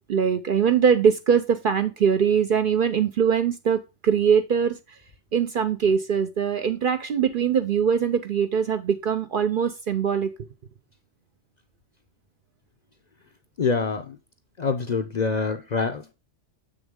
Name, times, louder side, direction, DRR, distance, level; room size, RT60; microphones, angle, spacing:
voice 1, 0.0-4.8 5.3-10.3, right 7 dB, 55° right, 0.6 m, -22 dB
voice 2, 13.6-14.2 14.6-16.1, left 4 dB, 45° left, 0.6 m, -25 dB
7.2 x 6.3 x 3.6 m
omnidirectional pair, 1.3 m